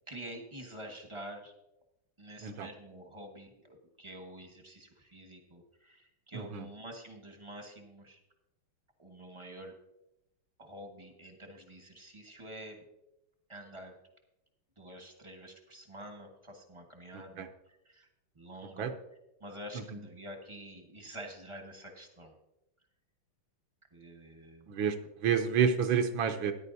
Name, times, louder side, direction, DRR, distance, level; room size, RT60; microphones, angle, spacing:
voice 1, 0.1-1.5 2.2-8.2 9.0-9.7 10.6-12.9 13.5-13.9 14.8-18.1 18.3-18.9 19.4-22.4 23.9-24.7, right 1 dB, 20° right, 3 dB, 0.9 m, -48 dB
voice 2, 25.2-26.5, right 7 dB, 75° right, 6 dB, 1.4 m, -28 dB
14.0 x 10.0 x 2.7 m, 0.88 s
omnidirectional pair, 2.3 m